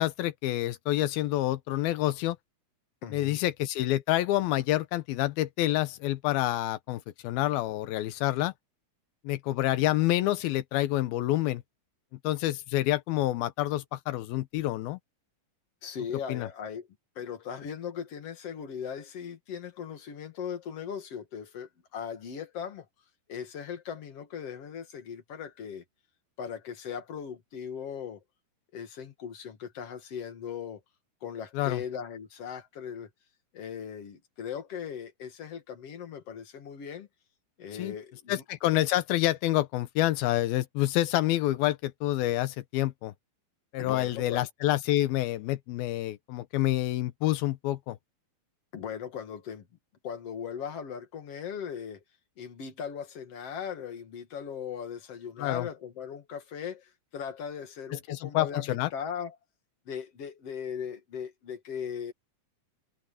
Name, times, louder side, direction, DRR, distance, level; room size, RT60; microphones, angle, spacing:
voice 1, 0.0-2.4 3.1-8.5 9.2-11.6 12.2-15.0 16.3-16.5 31.5-31.8 37.8-37.9 38.3-43.1 43.7-48.0 55.4-55.7 57.9-58.9, left 15 dB, 85° left, 2.8 m, -28 dB
voice 2, 3.0-3.4 15.8-16.9 17.2-22.9 23.3-25.8 26.4-28.2 28.7-30.8 31.2-33.1 33.5-37.1 37.6-38.4 43.8-44.5 48.7-49.7 50.0-52.0 52.4-59.4 59.9-62.1, left 7 dB, 45° left, 2.7 m, -38 dB
omnidirectional pair, 4.3 m